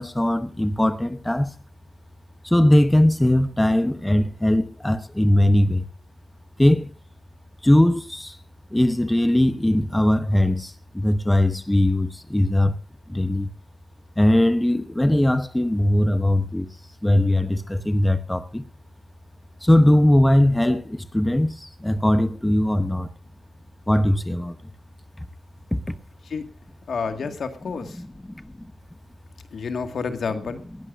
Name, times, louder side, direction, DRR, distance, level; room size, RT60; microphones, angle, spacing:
voice 1, 0.0-1.5 2.4-5.9 6.6-6.9 7.6-8.4 8.7-12.7 13.1-13.5 14.2-16.7 17.0-18.7 19.6-23.1 23.9-24.5 28.0-28.7, left 1 dB, 10° left, 1.0 m, -20 dB
voice 2, 26.9-28.0 29.5-30.6, left 5 dB, 75° left, 2.0 m, -29 dB
19.5 x 16.0 x 2.6 m
wide cardioid pair, 110°, 0 cm